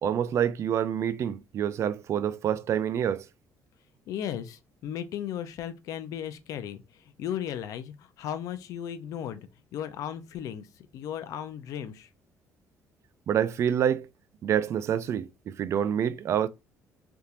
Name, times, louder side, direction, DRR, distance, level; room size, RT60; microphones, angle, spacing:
voice 1, 0.0-3.3 13.3-14.1 14.4-16.5, right 9 dB, 50° right, 0.3 m, -27 dB
voice 2, 4.1-10.7 10.9-12.1, left 10 dB, 70° left, 0.5 m, -36 dB
3.4 x 2.8 x 2.4 m
cardioid pair, 110°, 6 cm